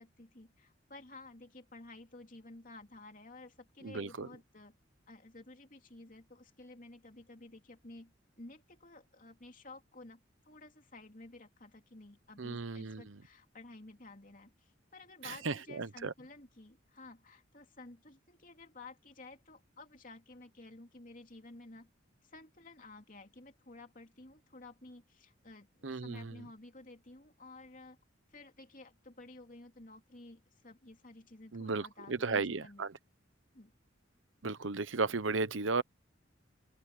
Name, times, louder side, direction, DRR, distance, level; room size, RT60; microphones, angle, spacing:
voice 1, 0.0-4.7 5.1-21.9 22.2-28.0 28.3-32.9 33.5-33.7, left 2 dB, 45° left, 3.1 m, -53 dB
voice 2, 3.8-4.3 12.4-13.2 15.2-16.1 25.8-26.3 31.5-32.9 34.4-35.8, right 4 dB, 80° right, 1.0 m, -35 dB
open air
head